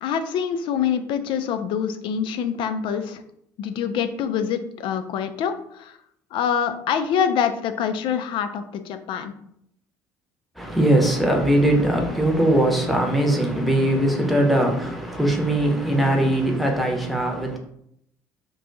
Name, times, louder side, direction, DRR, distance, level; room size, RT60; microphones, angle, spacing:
voice 1, 0.0-3.2 3.6-5.9 6.3-9.3, left 7 dB, 55° left, 9 dB, 0.4 m, -25 dB
voice 2, 10.6-17.6, right 1 dB, ahead, 1 dB, 0.9 m, -20 dB
2.5 x 2.3 x 3.9 m, 0.72 s
hypercardioid pair, 60°, 10 cm